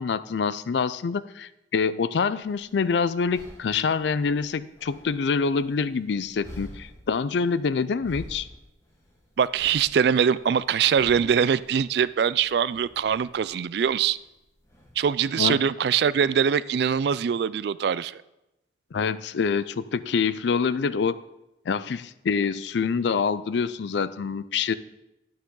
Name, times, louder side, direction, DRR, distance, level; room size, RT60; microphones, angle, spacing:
voice 1, 0.0-8.5 15.4-15.6 18.9-21.2 21.7-24.7, left 5 dB, 70° left, 15 dB, 0.4 m, -26 dB
sound 1, 2.4-15.5, equal, 15° left, 1.5 m, -49 dB
voice 2, 9.4-14.2 15.0-18.2, right 7 dB, 65° right, 18 dB, 0.3 m, -23 dB
11.5 x 8.6 x 3.9 m, 0.91 s
head